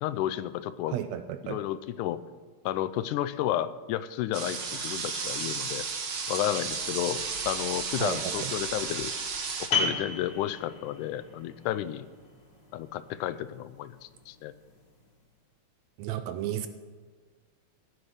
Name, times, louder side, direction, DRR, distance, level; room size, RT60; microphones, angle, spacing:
voice 1, 0.0-1.0 1.4-2.2 2.7-5.9 6.3-9.1 9.7-12.1 12.7-14.5, left 12 dB, 90° left, 14 dB, 2.1 m, -32 dB
voice 2, 0.9-1.6 8.0-8.5 16.0-16.7, right 11 dB, 75° right, 10 dB, 1.7 m, -33 dB
sound 1, 4.3-9.7, right 5 dB, 45° right, 1.6 m, -33 dB
sound 2, 9.7-15.1, left 4 dB, 35° left, 3.0 m, -35 dB
15.0 x 8.9 x 6.4 m, 1.5 s
omnidirectional pair, 3.5 m